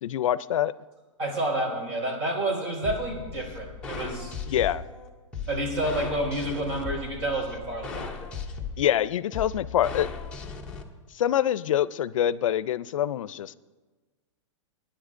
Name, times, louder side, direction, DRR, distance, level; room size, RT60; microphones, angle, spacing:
voice 1, 0.0-0.7 4.5-4.8 8.8-10.1 11.1-13.6, left 11 dB, 80° left, 17 dB, 0.5 m, -25 dB
voice 2, 1.2-4.4 5.5-8.1, right 1 dB, 55° right, 1 dB, 4.7 m, -29 dB
sound 1, 2.8-10.8, left 5 dB, 5° left, 0.7 m, -37 dB
24.5 x 10.0 x 2.5 m, 1.3 s
supercardioid pair, 170°, 17 cm